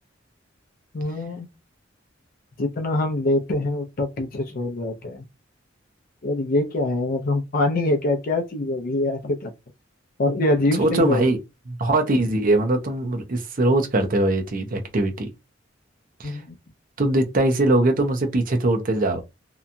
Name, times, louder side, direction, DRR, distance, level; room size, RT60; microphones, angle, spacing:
voice 1, 0.9-1.5 2.6-5.2 6.2-9.5 10.2-11.4 16.2-16.6, left 2 dB, 50° left, 0.5 m, -24 dB
voice 2, 10.8-11.4 11.7-15.3 16.2-16.4 17.0-19.2, right 1 dB, 45° right, 0.6 m, -21 dB
2.8 x 2.3 x 2.5 m
head